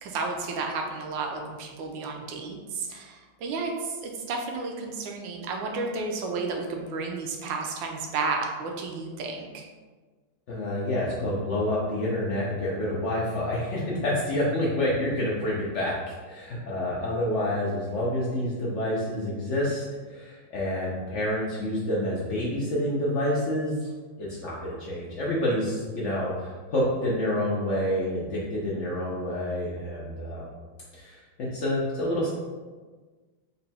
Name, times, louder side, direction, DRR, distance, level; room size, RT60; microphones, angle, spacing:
voice 1, 0.0-9.7, right 4 dB, 80° right, 2 dB, 1.3 m, -32 dB
voice 2, 10.5-23.9 24.2-30.4 30.9-32.3, left 1 dB, 80° left, -6 dB, 0.6 m, -28 dB
4.0 x 2.2 x 4.1 m, 1.4 s
omnidirectional pair, 2.1 m